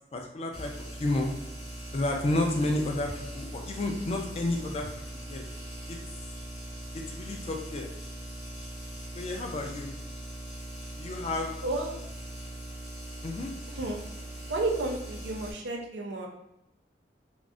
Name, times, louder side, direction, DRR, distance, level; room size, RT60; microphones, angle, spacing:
voice 1, 0.1-0.7 1.0-1.3 1.9-4.9 5.3-5.4 5.9-6.0 6.9-7.9 9.1-9.9 11.0-11.5 13.2-13.5, left 2 dB, 35° left, 2 dB, 0.4 m, -31 dB
sound 1, 0.5-15.5, right 1 dB, 75° left, 1.4 m, -41 dB
voice 2, 13.7-14.0 14.5-16.3, right 2 dB, 70° right, 1 dB, 0.6 m, -31 dB
3.5 x 2.0 x 2.5 m, 0.87 s
head